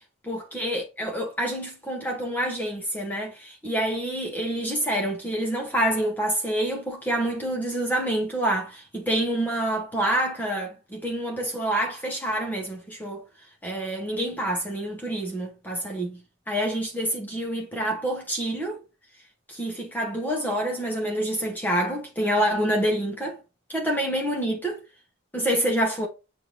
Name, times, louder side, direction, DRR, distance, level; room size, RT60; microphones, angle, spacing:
voice 1, 0.2-13.2 13.6-16.2 16.5-18.8 19.5-23.4 23.7-24.8 25.3-26.1, right 1 dB, 10° left, 0.8 m, -27 dB
6.9 x 2.6 x 3.0 m
head